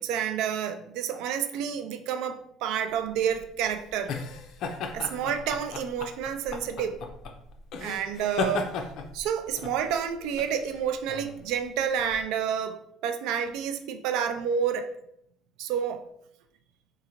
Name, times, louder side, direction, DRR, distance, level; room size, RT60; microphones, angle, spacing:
voice 1, 0.0-4.1 4.9-7.0 7.8-8.7 9.1-14.9 15.6-16.0, right 8 dB, 75° right, 8 dB, 0.3 m, -29 dB
sound 1, 3.0-12.2, left 4 dB, 55° left, 0.4 m, -36 dB
3.8 x 2.5 x 2.8 m, 0.73 s
cardioid pair, 160°, 0 cm